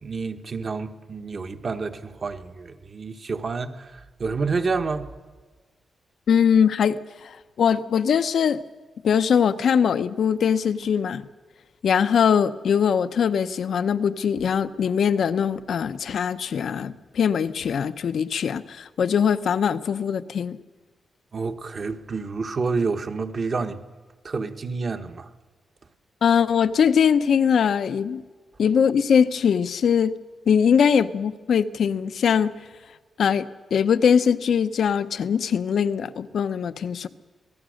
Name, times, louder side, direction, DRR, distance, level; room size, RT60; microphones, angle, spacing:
voice 1, 0.0-5.1 21.3-23.8 24.2-25.3, right 4 dB, 45° right, 1.3 m, -29 dB
voice 2, 6.3-8.6 9.0-11.3 11.8-20.6 26.2-28.2 28.6-30.1 30.5-32.5 33.2-37.1, left 7 dB, 70° left, 0.8 m, -21 dB
27.0 x 18.0 x 6.5 m
cardioid pair, 110°, 0 cm